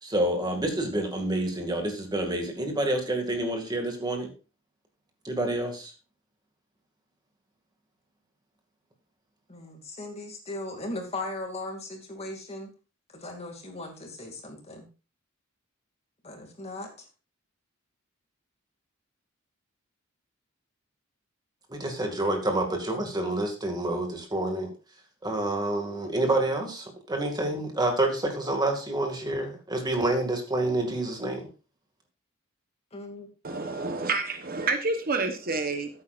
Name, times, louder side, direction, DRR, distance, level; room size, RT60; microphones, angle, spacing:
voice 1, 0.0-4.3 5.2-5.9 21.7-24.7 25.2-31.5, right 1 dB, 20° right, 3 dB, 2.2 m, -28 dB
voice 2, 9.5-12.7 13.1-14.9 16.2-17.1 32.9-33.3, left 2 dB, 30° left, 3 dB, 2.5 m, -38 dB
voice 3, 33.4-35.9, right 3 dB, 45° right, 7 dB, 1.1 m, -28 dB
13.0 x 8.9 x 2.5 m, 0.33 s
head